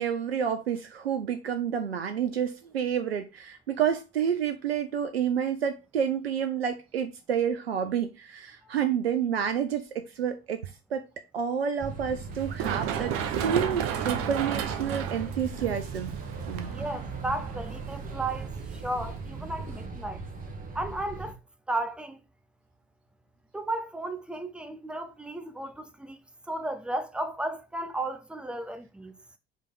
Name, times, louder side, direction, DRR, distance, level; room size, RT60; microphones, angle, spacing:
voice 1, 0.0-11.0 11.3-16.1 16.5-16.9, right 8 dB, 80° right, 0.5 m, -29 dB
sound 1, 11.8-21.3, right 4 dB, 25° right, 1.5 m, -39 dB
Run, 12.3-19.9, right 9 dB, 45° right, 0.8 m, -34 dB
voice 2, 16.7-20.2 20.7-21.4 21.7-22.2 23.5-26.2 26.5-29.1, right 1 dB, 5° right, 0.7 m, -34 dB
5.0 x 3.3 x 5.6 m
figure-of-eight pair, 60°, 30 cm